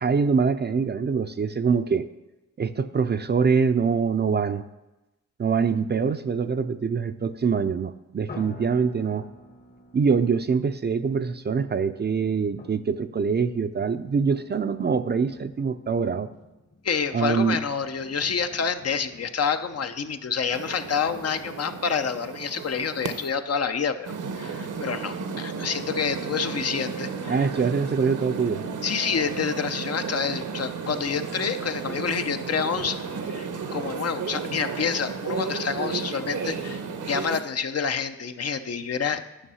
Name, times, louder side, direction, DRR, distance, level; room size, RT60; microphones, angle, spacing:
voice 1, 0.0-2.1 2.6-4.6 5.4-9.2 9.9-16.3 17.1-17.6 27.3-28.7, right 5 dB, 35° right, 10 dB, 0.5 m, -24 dB
sound 1, 8.3-11.3 12.6-22.9 23.4-23.5 23.7-23.9, left 3 dB, 30° left, 1.0 m, -49 dB
voice 2, 16.8-27.5 28.8-33.0 33.3-39.2, left 6 dB, 55° left, 9 dB, 0.7 m, -28 dB
sound 2, 20.5-23.3 24.0-37.4, right 5 dB, 80° right, 1.0 m, -33 dB
10.0 x 5.5 x 5.6 m, 1.0 s
cardioid pair, 60°, 30 cm